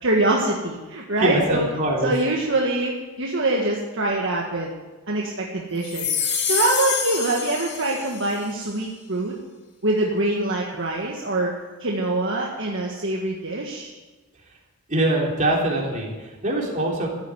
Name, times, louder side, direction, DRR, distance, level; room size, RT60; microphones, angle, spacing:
voice 1, 0.0-1.7 2.0-4.7 5.1-9.3 9.8-11.5 11.8-13.9, right 2 dB, 55° right, -1 dB, 1.7 m, -24 dB
voice 2, 1.2-2.1 14.9-17.1, right 1 dB, 35° right, -2 dB, 3.7 m, -23 dB
sound 1, 5.8-8.4, left 6 dB, 50° left, 2.5 m, -26 dB
14.0 x 8.7 x 9.8 m, 1.2 s
head